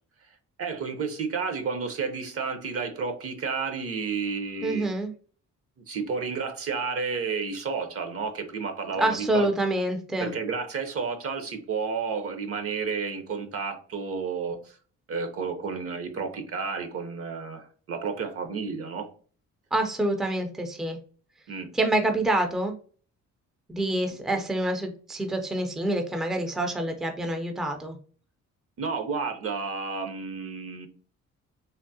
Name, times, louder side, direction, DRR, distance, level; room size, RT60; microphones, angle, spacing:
voice 1, 0.6-4.9 5.9-9.5 10.2-14.6 15.1-19.1 21.5-21.7 24.3-24.4 28.8-30.9, right 5 dB, 50° right, 7 dB, 0.7 m, -31 dB
voice 2, 4.6-5.1 9.0-10.3 19.7-21.0 21.7-22.7 23.7-28.0, right 1 dB, ahead, 5 dB, 0.4 m, -27 dB
3.5 x 2.0 x 2.6 m, 0.41 s
cardioid pair, 90°, 30 cm